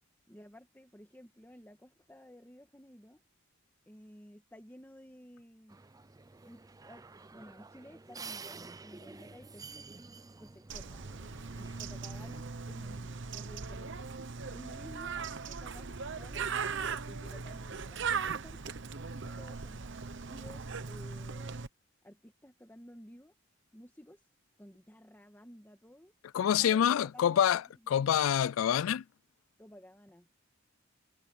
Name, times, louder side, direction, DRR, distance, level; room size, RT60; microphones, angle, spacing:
voice 1, 0.3-3.2 3.8-5.8 6.4-7.0 7.3-10.0 10.4-11.0 11.5-14.0 14.5-18.7 19.2-21.6 22.0-23.3 23.7-24.3 24.6-26.1 26.6-27.5 29.6-30.3, equal, 10° left, 1.7 m, -54 dB
sound 1, 5.7-12.4, right 4 dB, 20° right, 0.5 m, -50 dB
Bird, 10.7-21.7, right 5 dB, 65° right, 1.0 m, -39 dB
voice 2, 26.3-29.0, left 9 dB, 80° left, 0.3 m, -27 dB
head